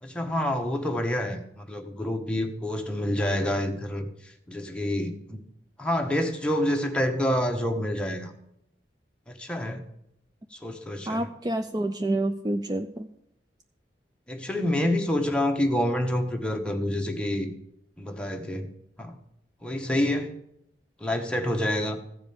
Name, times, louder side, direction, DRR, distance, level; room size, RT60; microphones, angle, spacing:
voice 1, 0.0-5.4 5.8-8.3 9.3-9.8 10.5-11.3 14.3-17.5 18.0-18.7 19.0-19.2 19.6-20.3 21.0-22.0, left 1 dB, 5° left, 3 dB, 1.2 m, -28 dB
voice 2, 11.1-13.1, right 1 dB, 25° right, 7 dB, 0.5 m, -28 dB
15.0 x 5.1 x 8.6 m, 0.79 s
head